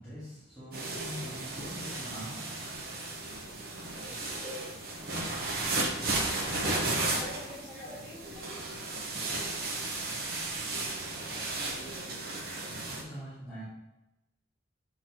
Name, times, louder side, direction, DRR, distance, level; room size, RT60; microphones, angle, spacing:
voice 1, 0.0-2.4 4.3-4.7 7.0-8.0 9.1-9.4 11.8-12.0 12.9-13.6, equal, 10° left, -14 dB, 2.0 m, -44 dB
sound 1, 0.7-13.0, right 2 dB, 50° right, 1.0 m, -34 dB
voice 2, 3.9-4.2 6.5-8.2 11.3-12.0, left 1 dB, 30° left, -5 dB, 1.6 m, -48 dB
7.9 x 3.9 x 3.0 m, 0.97 s
head